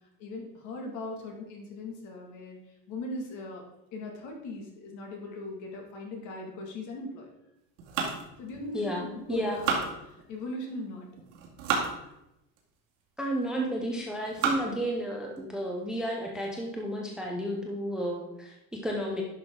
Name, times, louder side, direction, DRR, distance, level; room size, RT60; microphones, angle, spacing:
voice 1, 0.2-2.6 2.9-3.6 3.9-7.3 8.4-11.1, left 2 dB, 50° left, 1 dB, 2.1 m, -39 dB
sound 1, 7.8-9.0 9.4-10.5 11.2-11.9 12.6-12.7 13.4-13.7 14.2-14.8 15.4-15.5 15.8-15.9 16.3-16.7, right 5 dB, 65° right, 2.3 m, -32 dB
voice 2, 8.7-9.6 13.2-19.2, equal, ahead, -1 dB, 0.6 m, -32 dB
10.5 x 5.8 x 3.8 m, 0.88 s
cardioid pair, 170°, 38 cm